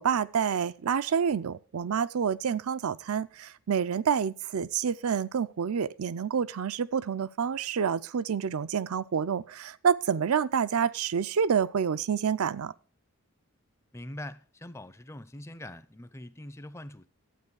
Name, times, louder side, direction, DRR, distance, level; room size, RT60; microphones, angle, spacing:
voice 1, 0.0-12.7, right 7 dB, 80° right, 0.5 m, -28 dB
voice 2, 13.9-17.1, left 1 dB, 10° left, 0.4 m, -43 dB
12.0 x 8.9 x 4.7 m
head